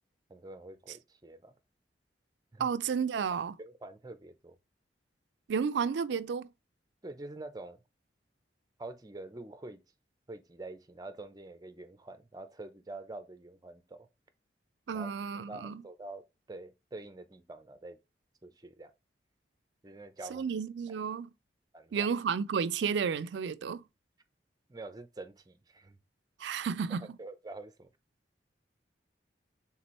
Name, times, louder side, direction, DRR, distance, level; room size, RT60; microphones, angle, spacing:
voice 1, 0.3-1.5 2.5-2.7 3.6-4.6 7.0-7.8 8.8-9.8 10.3-14.1 14.9-15.1 15.5-18.0 18.4-18.9 19.8-20.4 20.9-21.0 21.7-22.1 24.7-26.0 26.9-27.9, right 2 dB, 20° right, 0.5 m, -46 dB
voice 2, 2.6-3.6 5.5-6.5 14.9-15.8 20.3-21.3 21.9-23.8 26.4-27.2, right 6 dB, 80° right, 0.4 m, -32 dB
4.3 x 3.7 x 3.0 m
head